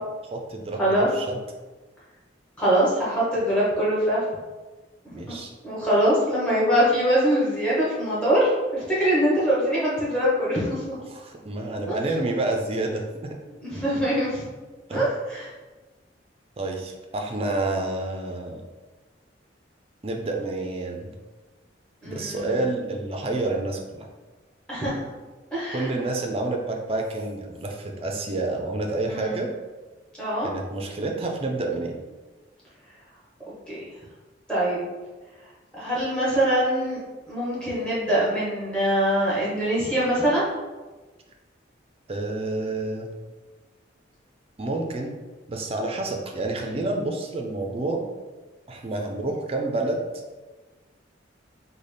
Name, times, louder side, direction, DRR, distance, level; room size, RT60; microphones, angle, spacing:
voice 1, 0.3-1.4 5.1-5.5 11.1-13.3 14.9-15.1 16.6-18.6 20.0-21.1 22.0-24.1 25.7-29.5 30.4-31.9 42.1-43.1 44.6-45.1 45.5-48.0 48.7-50.0, right 2 dB, 30° right, 2 dB, 0.4 m, -29 dB
voice 2, 2.6-4.2 5.0-5.4 5.6-10.9 11.9-12.0 13.6-14.4 14.9-15.5 22.0-22.6 24.7-25.1 25.5-25.9 29.1-29.4 30.2-30.5 33.7-33.8 34.5-34.8 35.7-37.0 37.3-40.4, right 1 dB, 5° left, -8 dB, 1.1 m, -23 dB
3.9 x 2.2 x 3.3 m, 1.3 s
head